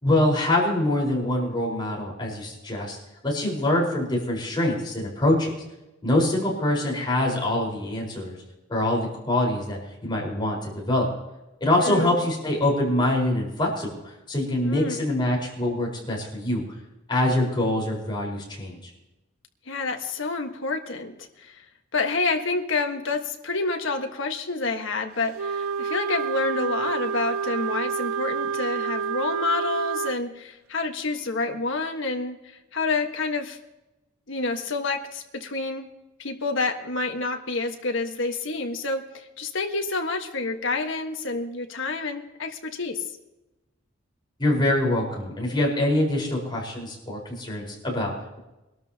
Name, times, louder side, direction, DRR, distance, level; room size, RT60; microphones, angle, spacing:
voice 1, 0.0-3.0 3.2-5.5 6.0-8.4 8.7-11.1 11.6-14.0 14.3-16.6 17.1-18.9 44.4-48.4, left 1 dB, 25° left, -2 dB, 4.6 m, -24 dB
voice 2, 11.8-12.1 14.6-15.0 19.7-21.6 21.9-33.6 34.3-35.9 36.2-43.0, left 3 dB, 65° left, 4 dB, 1.5 m, -28 dB
Wind instrument woodwind instrument, 25.3-30.2, right 6 dB, 90° right, 0.3 m, -28 dB
23.5 x 12.5 x 2.9 m, 0.99 s
head